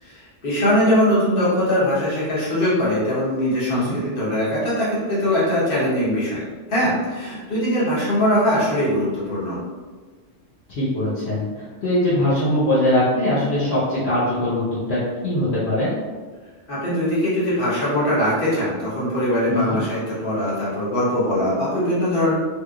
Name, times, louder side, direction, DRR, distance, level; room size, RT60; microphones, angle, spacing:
voice 1, 0.0-6.4 6.7-9.6 16.7-22.3, equal, 50° left, -8 dB, 1.4 m, -21 dB
voice 2, 10.7-15.9 19.5-19.8, left 1 dB, 65° left, -11 dB, 1.1 m, -21 dB
3.3 x 3.0 x 2.4 m, 1.4 s
omnidirectional pair, 1.2 m